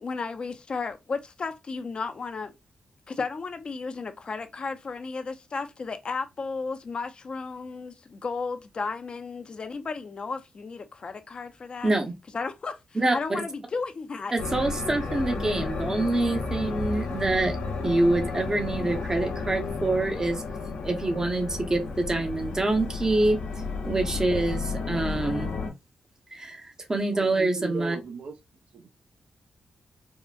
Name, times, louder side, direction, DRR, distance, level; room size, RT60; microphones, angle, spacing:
voice 1, 0.0-2.5 3.1-11.9 12.3-12.8 13.1-14.3, left 4 dB, 45° left, 0.5 m, -34 dB
voice 2, 14.3-17.6 17.8-20.4 20.8-23.4 23.8-25.5 26.3-28.0, right 2 dB, 25° right, 0.8 m, -26 dB
sound 1, 14.4-25.7, left 4 dB, 90° left, 0.8 m, -32 dB
voice 3, 27.1-28.4 28.7-28.9, right 3 dB, 75° right, 0.7 m, -37 dB
3.7 x 2.1 x 2.4 m
cardioid pair, 75°, 2 cm